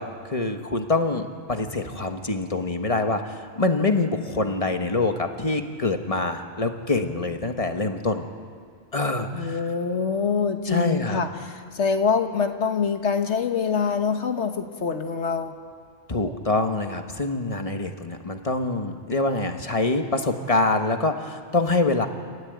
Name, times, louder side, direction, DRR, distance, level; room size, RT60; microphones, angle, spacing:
voice 1, 0.0-8.3 8.9-9.6 10.7-11.2 16.1-22.1, left 2 dB, 30° left, 6 dB, 1.4 m, -25 dB
voice 2, 9.3-15.6, left 5 dB, 85° left, 6 dB, 1.6 m, -25 dB
27.5 x 14.5 x 9.4 m, 2.1 s
omnidirectional pair, 1.1 m